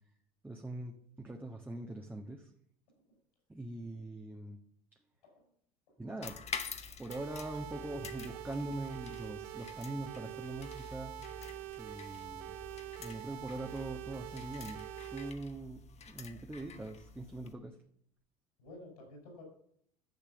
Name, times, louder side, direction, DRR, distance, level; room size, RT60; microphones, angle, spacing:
voice 1, 0.4-2.5 3.5-4.6 6.0-6.4 7.0-11.1 11.8-12.6 13.0-15.8 16.1-17.7, right 2 dB, 10° right, 1 dB, 1.4 m, -42 dB
voice 2, 2.9-3.2 5.2-5.5 5.9-6.0 18.6-19.4, left 2 dB, 80° left, 2 dB, 5.6 m, -53 dB
sound 1, 6.2-17.5, left 5 dB, 35° left, 1.2 m, -48 dB
sound 2, 7.1-15.3, right 14 dB, 65° right, 0.8 m, -45 dB
11.0 x 6.8 x 6.9 m, 0.68 s
hypercardioid pair, 70°, 19 cm